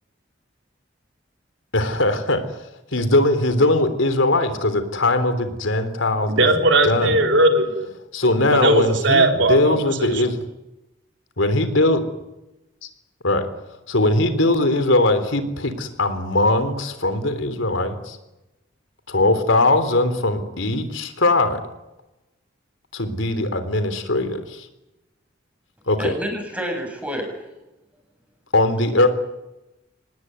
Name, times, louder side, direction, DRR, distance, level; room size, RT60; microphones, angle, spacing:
voice 1, 1.7-2.4 2.9-6.5 6.8-7.1 8.1-10.4 11.4-12.0 13.2-13.5 13.9-18.2 19.1-21.6 22.9-24.7 25.9-26.1 28.5-29.1, left 2 dB, 80° left, 10 dB, 3.6 m, -20 dB
voice 2, 6.3-7.9 8.6-9.7 10.0-10.1, right 2 dB, 70° right, 4 dB, 3.9 m, -18 dB
voice 3, 26.0-27.4, equal, 5° right, 2 dB, 8.0 m, -28 dB
26.0 x 19.5 x 9.6 m, 0.96 s
head